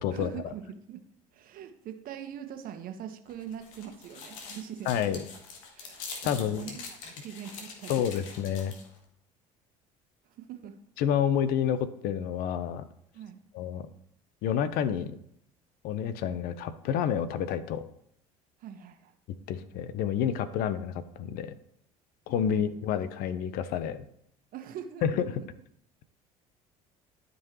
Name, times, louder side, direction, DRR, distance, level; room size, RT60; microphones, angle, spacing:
voice 1, 0.1-1.0 1.3-5.2 5.7-7.9 10.2-10.8 13.1-13.4 18.6-19.1 22.5-22.7 24.5-25.5, right 9 dB, 55° right, 6 dB, 1.3 m, -43 dB
sound 1, 3.3-9.0, left 5 dB, 80° left, 1.6 m, -44 dB
voice 2, 4.9-5.2 6.2-6.8 7.9-8.8 11.0-12.8 13.5-13.9 14.4-15.2 15.8-17.8 19.5-21.5 22.3-24.0 25.0-25.3, left 8 dB, 65° left, 13 dB, 0.8 m, -29 dB
12.5 x 5.4 x 3.0 m, 0.70 s
hypercardioid pair, 65°, 17 cm